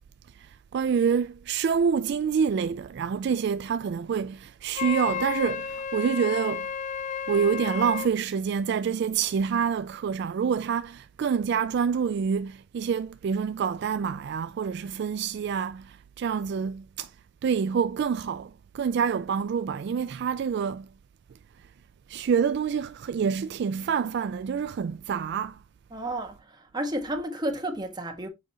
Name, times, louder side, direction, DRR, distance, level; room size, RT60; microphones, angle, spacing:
voice 1, 0.4-6.7 7.3-17.1 17.4-20.9 22.1-25.6, right 6 dB, 60° right, 0.3 m, -27 dB
Wind instrument woodwind instrument, 4.7-8.1, left 7 dB, 40° left, 0.3 m, -32 dB
voice 2, 25.9-28.3, right 1 dB, 20° right, 1.5 m, -32 dB
7.6 x 4.9 x 2.8 m
head